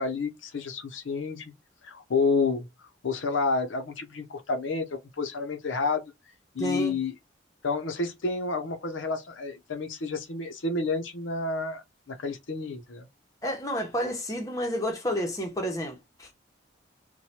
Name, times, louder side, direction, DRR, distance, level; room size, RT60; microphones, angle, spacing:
voice 1, 0.0-1.4 1.8-6.1 6.5-7.1 7.6-13.1, left 4 dB, 90° left, 0.6 m, -30 dB
voice 2, 6.6-7.0 13.4-16.3, equal, 15° left, 0.7 m, -30 dB
3.1 x 2.2 x 2.7 m
head